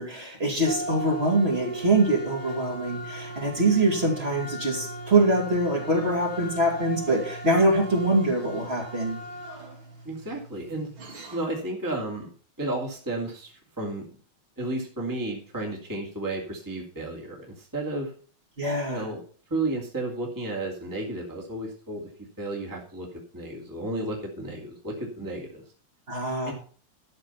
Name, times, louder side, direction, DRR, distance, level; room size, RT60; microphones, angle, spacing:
voice 1, 0.0-9.2 18.6-19.1 26.1-26.5, right 2 dB, 30° right, 0 dB, 2.7 m, -24 dB
sound 1, 0.6-11.6, right 1 dB, 75° right, 3.4 m, -38 dB
voice 2, 10.0-10.9 11.3-12.3 12.6-14.1 14.6-18.1 18.9-19.2 19.5-22.1 22.4-25.6 26.4-26.5, right 2 dB, 10° right, 0 dB, 2.4 m, -32 dB
12.0 x 6.4 x 5.6 m, 0.41 s
omnidirectional pair, 2.3 m